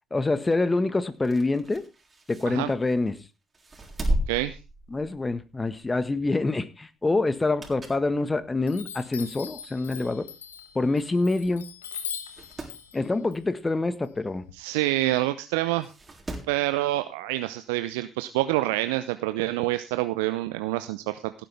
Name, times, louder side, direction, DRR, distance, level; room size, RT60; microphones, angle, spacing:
voice 1, 0.1-1.8 2.3-3.2 4.9-10.3 10.7-11.6 12.9-14.4, left 2 dB, 20° left, 12 dB, 1.5 m, -26 dB
sound 1, 1.1-3.1 3.5-5.4 5.8-6.0 7.3-8.1 8.6-8.7 9.6-9.7 9.9-10.0 10.2-10.3 11.1-11.3 11.6-11.7 12.1-12.8 14.7-14.8 15.8-16.6 17.9-18.0, right 1 dB, 25° right, 3.9 m, -34 dB
voice 2, 4.3-4.6 14.5-15.9 16.5-21.3, right 16 dB, 75° right, 12 dB, 0.6 m, -27 dB
Chime, 7.6-8.3 8.7-14.5, left 8 dB, 85° left, 1.1 m, -41 dB
16.5 x 10.0 x 3.5 m, 0.29 s
figure-of-eight pair, 50°, 0 cm